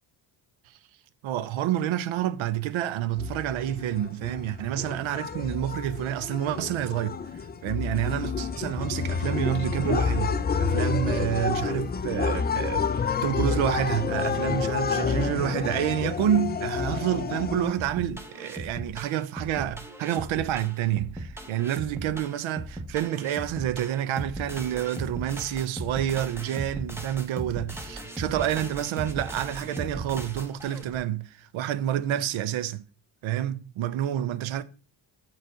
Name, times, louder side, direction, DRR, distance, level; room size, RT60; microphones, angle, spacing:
voice 1, 1.2-32.9 33.2-34.6, right 11 dB, 75° right, 0.6 m, -28 dB
sound 1, 3.2-17.7, left 5 dB, 20° left, 0.4 m, -29 dB
sound 2, 17.8-31.0, right 1 dB, 5° right, 0.9 m, -38 dB
6.6 x 3.2 x 4.7 m
cardioid pair, 75°, 49 cm